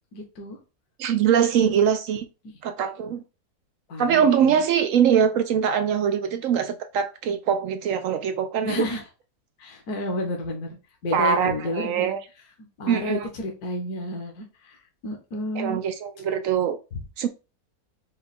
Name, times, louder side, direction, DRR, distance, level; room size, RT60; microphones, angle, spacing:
voice 1, 0.1-0.6 3.9-4.6 8.6-9.0 9.6-10.8 11.0-12.2 12.8-15.8 16.9-17.0, left 1 dB, 65° left, 1.5 m, -31 dB
voice 2, 1.0-2.3 2.6-3.2 4.0-8.9 11.1-12.2 12.9-13.3 15.6-16.8 17.2-17.3, right 8 dB, 70° right, 0.8 m, -22 dB
5.1 x 2.3 x 4.2 m
omnidirectional pair, 1.8 m